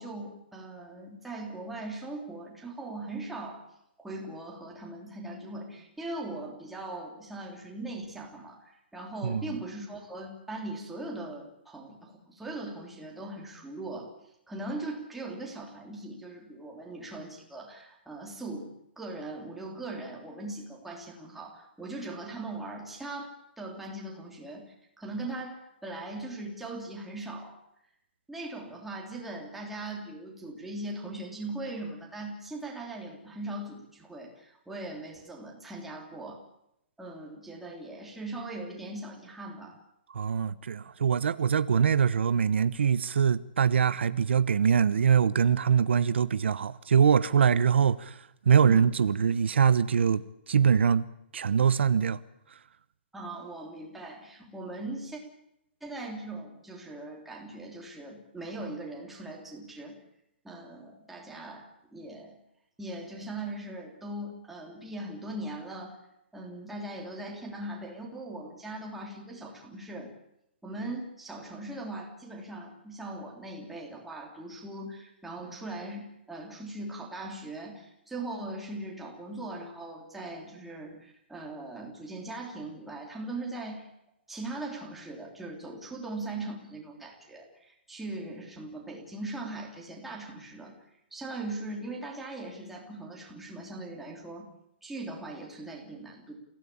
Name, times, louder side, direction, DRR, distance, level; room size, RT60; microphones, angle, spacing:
voice 1, 0.0-3.6 4.0-14.1 14.5-27.6 28.3-36.4 37.0-39.7 48.6-48.9 53.1-55.2 55.8-60.0 60.4-62.4 62.8-66.0 66.3-70.1 70.6-83.9 84.3-90.7 91.1-94.5 94.8-96.3, right 2 dB, 5° right, 3.6 m, -40 dB
voice 2, 9.2-9.6 40.1-51.1 51.3-52.2, right 7 dB, 85° right, 1.0 m, -23 dB
28.5 x 16.5 x 8.7 m
hypercardioid pair, 170°, 6 cm